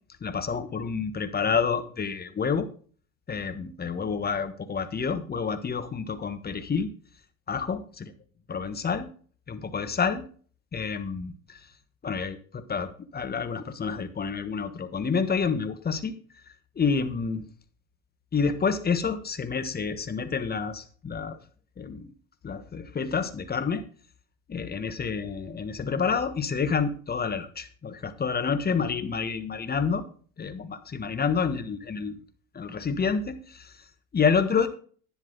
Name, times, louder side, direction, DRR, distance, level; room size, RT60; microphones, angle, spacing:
voice 1, 0.2-2.7 3.3-6.9 7.5-8.0 8.5-9.1 9.5-10.2 10.7-11.6 12.0-16.1 16.7-17.4 18.3-21.4 21.8-22.1 22.4-23.8 24.5-30.0 30.4-32.2 32.5-33.8 34.1-34.7, left 5 dB, 20° left, 10 dB, 1.4 m, -28 dB
11.0 x 9.9 x 3.9 m, 0.43 s
hypercardioid pair, 80°, 43 cm